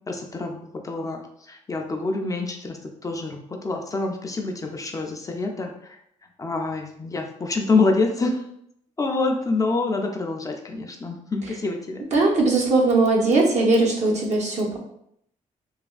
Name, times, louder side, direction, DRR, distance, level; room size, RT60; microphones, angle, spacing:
voice 1, 0.1-6.0 6.4-8.4 9.0-12.0, left 3 dB, 25° left, 3 dB, 0.4 m, -26 dB
voice 2, 12.1-14.8, right 3 dB, 60° right, -1 dB, 0.8 m, -19 dB
3.3 x 2.2 x 2.4 m, 0.73 s
cardioid pair, 90°, 14 cm